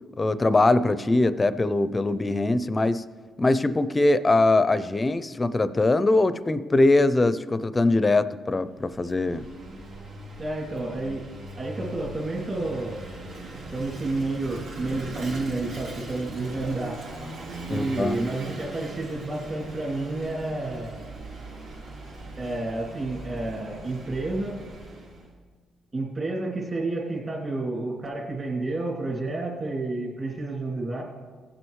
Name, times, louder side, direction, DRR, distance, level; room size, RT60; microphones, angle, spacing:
voice 1, 0.2-3.0 3.4-9.5 17.7-18.2, left 2 dB, 25° left, 14 dB, 0.4 m, -22 dB
Vehicle / Engine, 8.7-25.3, right 1 dB, 75° right, 2.6 m, -40 dB
voice 2, 10.4-11.2 11.6-13.0 13.7-17.0 17.7-21.0 22.4-24.6 25.9-31.0, right 2 dB, 35° right, -1 dB, 2.4 m, -30 dB
16.5 x 7.7 x 3.1 m, 1.5 s
cardioid pair, 90°, 0 cm